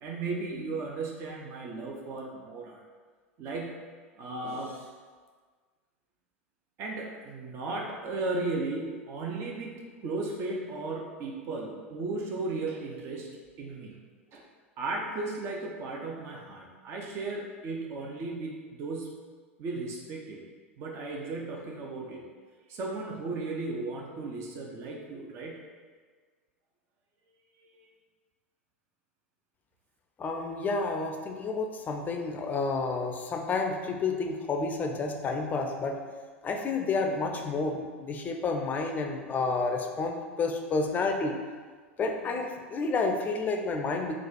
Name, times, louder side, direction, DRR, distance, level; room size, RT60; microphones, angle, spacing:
voice 1, 0.0-2.8 3.4-3.8 4.2-4.9 6.8-13.3 13.6-14.0 14.3-14.4 14.8-19.1 19.6-20.4 20.8-22.2 22.7-25.6, right 3 dB, 40° right, -1 dB, 0.7 m, -35 dB
voice 2, 30.2-36.0 36.4-41.4 42.0-44.2, left 3 dB, 25° left, 3 dB, 0.5 m, -30 dB
4.0 x 2.5 x 4.6 m, 1.5 s
figure-of-eight pair, 85°, 7 cm